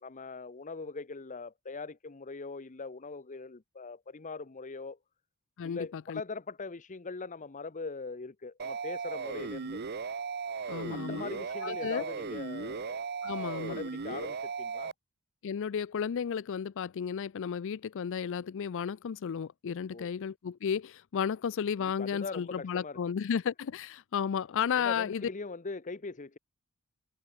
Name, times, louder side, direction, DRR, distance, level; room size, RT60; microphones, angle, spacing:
voice 1, 0.0-5.0 5.6-9.8 10.9-13.0 13.4-14.9 19.9-20.1 21.8-23.1 24.8-26.4, left 4 dB, 35° left, 0.8 m, -41 dB
voice 2, 5.6-6.2 10.7-11.2 11.6-12.0 13.2-13.8 15.4-25.3, left 7 dB, 60° left, 0.4 m, -33 dB
sound 1, 8.6-14.9, right 5 dB, 50° right, 0.8 m, -37 dB
head